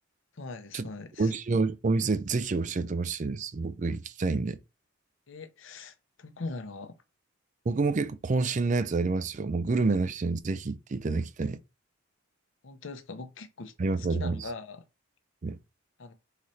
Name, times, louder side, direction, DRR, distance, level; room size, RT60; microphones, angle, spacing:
voice 1, 0.3-1.3 5.3-7.0 12.6-14.8 16.0-16.1, left 3 dB, 60° left, 0.7 m, -41 dB
voice 2, 1.2-4.6 7.7-11.6 13.8-14.4 15.4-15.6, right 3 dB, 35° right, 0.4 m, -28 dB
4.1 x 4.0 x 3.2 m
head